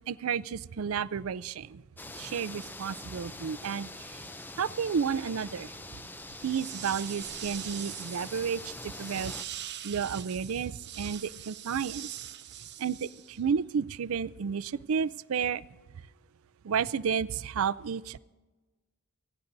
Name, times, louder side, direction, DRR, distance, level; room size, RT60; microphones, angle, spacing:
voice 1, 0.1-1.8 2.2-4.2 4.6-5.7 6.4-8.7 9.0-9.3 9.8-12.1 12.8-15.6 16.6-18.2, right 6 dB, 70° right, 16 dB, 0.4 m, -31 dB
sound 1, 2.0-9.4, left 2 dB, 10° left, 0.5 m, -44 dB
sound 2, 6.3-13.5, right 11 dB, 50° right, 0.9 m, -43 dB
26.5 x 16.0 x 2.7 m, 1.2 s
head